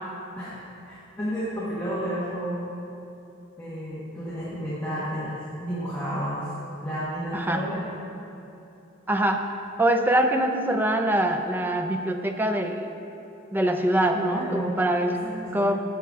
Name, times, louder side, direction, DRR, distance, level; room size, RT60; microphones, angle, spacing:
voice 1, 0.8-2.6 3.6-6.4 6.8-7.8 14.2-14.7 15.0-15.6, equal, 10° left, -11 dB, 1.5 m, -31 dB
voice 2, 7.3-7.6 9.1-9.5 9.8-12.9 13.5-15.2 15.5-15.8, right 1 dB, 10° right, 5 dB, 0.4 m, -24 dB
12.0 x 7.0 x 3.6 m, 2.8 s
head